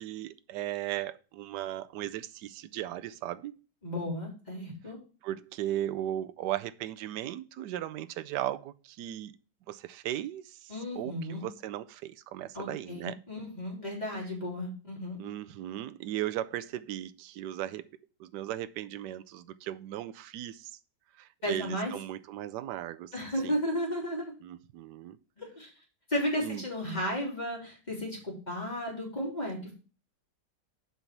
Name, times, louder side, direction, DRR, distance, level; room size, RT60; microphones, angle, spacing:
voice 1, 0.0-3.5 5.2-9.3 9.7-13.2 15.2-17.8 18.2-20.7 21.2-23.1 23.4-23.6 24.4-25.2 26.4-26.6, right 13 dB, 80° right, 1.2 m, -37 dB
voice 2, 3.8-5.0 10.7-11.4 12.5-15.2 21.4-21.9 23.1-24.3 25.4-25.7 26.1-29.7, equal, 25° left, 3.5 m, -34 dB
8.0 x 5.6 x 4.6 m
omnidirectional pair, 1.8 m